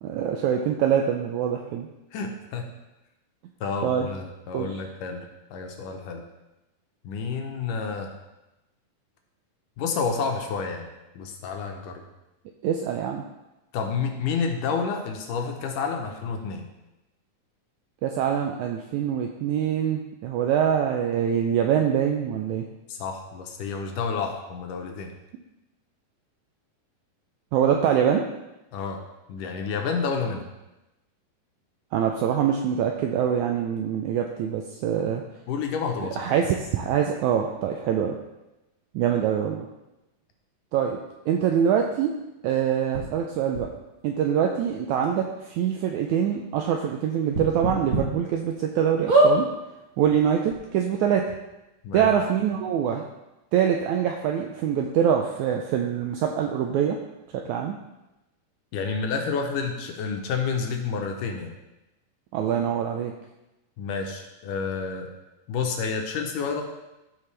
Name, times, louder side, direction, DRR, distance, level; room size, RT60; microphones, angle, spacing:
voice 1, 0.0-1.9 3.8-4.1 4.5-4.7 12.6-13.2 18.0-22.7 27.5-28.2 31.9-35.2 36.2-38.2 38.9-39.7 40.7-41.0 41.3-42.1 42.4-43.7 44.0-49.5 50.0-51.3 51.9-53.0 53.5-57.0 57.3-57.8 62.3-63.1, right 8 dB, 80° right, 2 dB, 1.7 m, -24 dB
voice 2, 2.1-2.7 3.6-6.2 7.0-8.1 9.8-10.9 11.2-12.0 13.7-16.7 22.9-25.1 28.7-29.0 29.3-30.5 35.5-36.3 51.8-52.1 58.7-61.5 63.8-65.1 65.5-66.6, left 5 dB, 75° left, 3 dB, 2.3 m, -29 dB
sound 1, 42.9-43.0 43.5-43.6 44.6-44.7 45.0-45.1 45.5-45.6 47.3-48.0 48.5-48.6 49.1-49.3 50.2-50.3 50.5-50.6, right 2 dB, 50° right, 1.0 m, -20 dB
14.0 x 5.3 x 3.3 m, 0.98 s
omnidirectional pair, 4.0 m